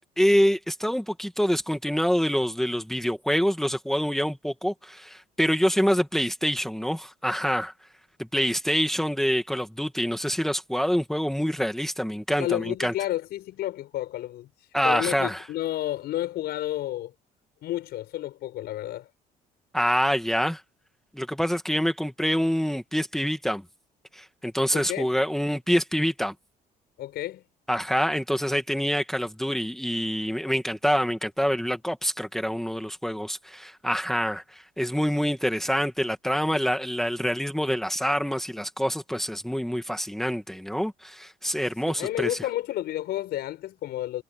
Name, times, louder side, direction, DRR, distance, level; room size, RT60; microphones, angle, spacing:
voice 1, 0.2-7.7 8.2-12.9 14.7-15.4 19.7-20.6 21.1-23.6 24.1-26.3 27.7-42.4, equal, ahead, 2.2 m, -26 dB
voice 2, 12.4-17.1 17.6-19.1 24.7-25.1 27.0-27.4 41.9-44.2, left 14 dB, 75° left, 5.9 m, -31 dB
cardioid pair, 110°, 17 cm